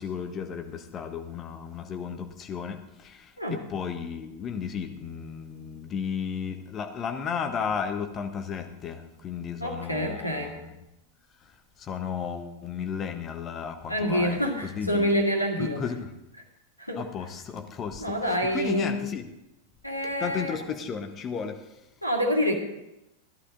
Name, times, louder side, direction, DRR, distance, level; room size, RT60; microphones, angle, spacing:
voice 1, 0.0-3.2 3.5-10.6 11.8-15.1 15.6-16.1 16.9-19.3 20.2-21.6, left 6 dB, 25° left, 6 dB, 1.3 m, -34 dB
voice 2, 9.6-10.5 13.9-15.8 16.8-17.0 18.0-19.0 19.8-20.6 22.0-22.5, equal, 90° left, 2 dB, 2.0 m, -27 dB
14.5 x 11.5 x 3.9 m, 0.93 s
figure-of-eight pair, 90°, 0 cm